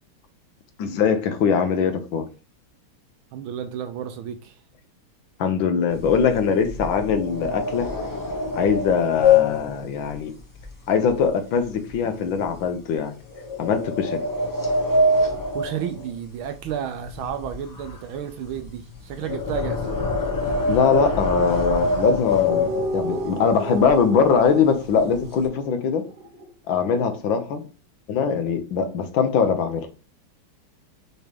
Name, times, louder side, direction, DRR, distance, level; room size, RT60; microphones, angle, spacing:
voice 1, 0.8-2.3 5.4-7.9 8.5-10.3 10.9-13.1 13.6-14.2 20.7-26.0 26.7-27.6 28.1-29.9, left 6 dB, 70° left, 1.6 m, -22 dB
voice 2, 3.3-4.6 15.5-20.1, right 9 dB, 75° right, 1.4 m, -32 dB
sound 1, 5.9-11.3 11.6-11.9 12.4-12.5 13.4-16.7 16.9-23.2 23.8-23.9 24.2-24.5 24.8-25.4, left 3 dB, 20° left, 0.5 m, -24 dB
sound 2, 22.5-26.5, right 2 dB, 60° right, 1.5 m, -33 dB
6.5 x 3.3 x 5.2 m
omnidirectional pair, 2.4 m